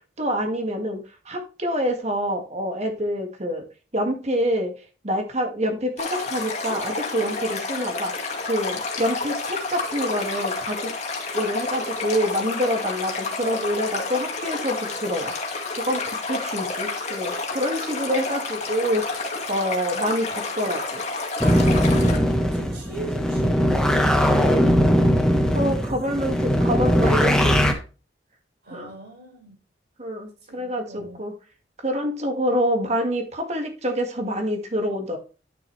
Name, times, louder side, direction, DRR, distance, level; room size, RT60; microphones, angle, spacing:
voice 1, 0.2-1.0 1.3-3.6 3.9-4.7 5.0-10.9 11.3-15.3 15.7-21.0 25.5-27.8 28.7-28.9 30.0-31.3 31.8-35.2, equal, 40° right, 2.0 m, -26 dB
Stream, 6.0-22.2, left 3 dB, 40° left, 2.1 m, -30 dB
sound 1, 21.4-27.7, equal, 5° left, 1.2 m, -20 dB
voice 2, 22.0-24.4 28.6-29.6 30.5-31.3, right 2 dB, 65° right, 5.3 m, -40 dB
10.5 x 6.4 x 3.2 m
head